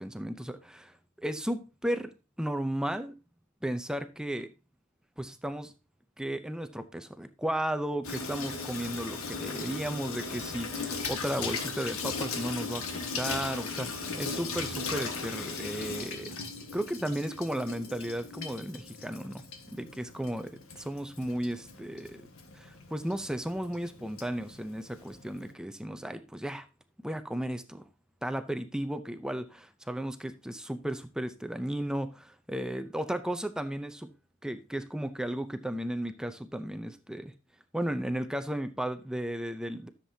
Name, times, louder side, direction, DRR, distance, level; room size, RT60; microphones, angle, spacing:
voice 1, 0.0-2.1 2.4-3.1 3.6-4.5 5.2-5.7 6.2-16.3 16.7-19.4 19.7-22.2 22.5-26.7 27.0-27.8 28.2-34.1 34.4-37.3 37.7-39.9, right 1 dB, 5° right, 9 dB, 0.5 m, -34 dB
Water tap faucet / Sink (filling or washing), 8.0-25.5, left 4 dB, 80° left, 1.6 m, -38 dB
13.5 x 7.5 x 2.8 m, 0.30 s
head